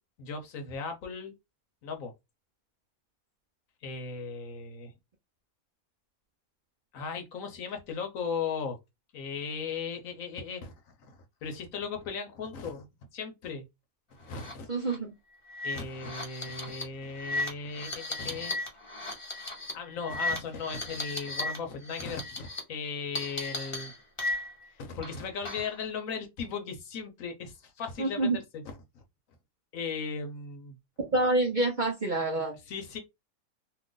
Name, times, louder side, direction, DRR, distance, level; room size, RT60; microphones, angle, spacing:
voice 1, 0.2-1.3 1.8-2.1 3.8-4.9 6.9-8.8 9.1-10.7 11.0-12.9 13.1-13.6 14.2-14.7 15.6-18.6 19.7-23.9 24.7-29.0 29.7-30.8 32.7-33.0, left 5 dB, 65° left, 1.2 m, -37 dB
sound 1, 14.3-14.5 14.8-15.0 15.5-21.6 21.8-22.6 23.2-24.7 25.0-25.8, left 2 dB, 25° left, 0.9 m, -36 dB
voice 2, 14.7-15.1 28.0-28.4 31.1-32.5, right 2 dB, 45° right, 0.6 m, -27 dB
2.8 x 2.5 x 3.7 m
omnidirectional pair, 1.5 m